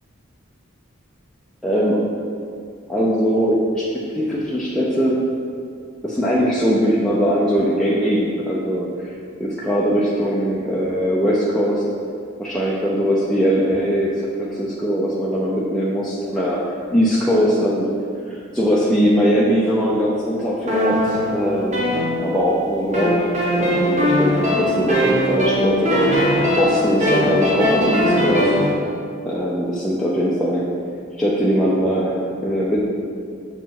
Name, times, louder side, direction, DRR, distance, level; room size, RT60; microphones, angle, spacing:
voice 1, 1.6-2.0 2.9-3.8 4.1-5.2 6.0-9.1 9.4-11.8 12.4-16.6 16.9-17.9 18.3-21.8 22.2-23.3 23.6-26.1 26.6-28.5 29.2-30.6 31.2-32.1 32.4-32.9, equal, 5° left, -7 dB, 0.7 m, -20 dB
sound 1, 20.7-22.5 22.9-28.7, left 1 dB, 35° right, 1.3 m, -20 dB
6.1 x 4.6 x 5.8 m, 2.2 s
head